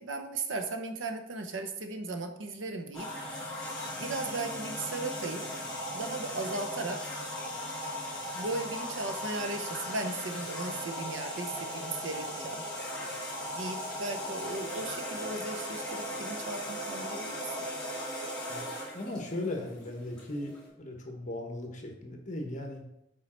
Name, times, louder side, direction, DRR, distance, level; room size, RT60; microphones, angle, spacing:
voice 1, 0.0-3.1 4.0-5.4 5.9-7.0 8.3-12.6 13.6-17.6, right 2 dB, 85° right, 6 dB, 0.9 m, -36 dB
sound 1, 2.9-20.7, equal, 5° left, 2.5 m, -38 dB
voice 2, 18.9-20.5 20.8-22.8, left 1 dB, 40° left, 2 dB, 1.1 m, -37 dB
7.2 x 4.7 x 4.4 m, 0.84 s
head